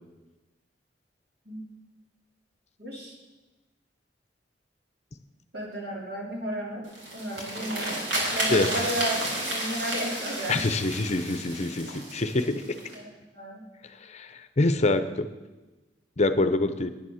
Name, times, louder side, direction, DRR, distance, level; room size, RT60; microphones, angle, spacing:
voice 1, 2.8-3.2 5.5-6.8 7.1-8.0 8.3-10.6 12.9-13.6, right 1 dB, 65° right, -2 dB, 3.2 m, -33 dB
sound 1, 6.8-12.9, right 1 dB, 90° right, 4.4 m, -32 dB
voice 2, 8.5-8.9 10.5-12.6 13.8-15.3 16.2-16.9, left 2 dB, 40° left, 11 dB, 0.7 m, -26 dB
10.0 x 9.8 x 6.3 m, 1.1 s
head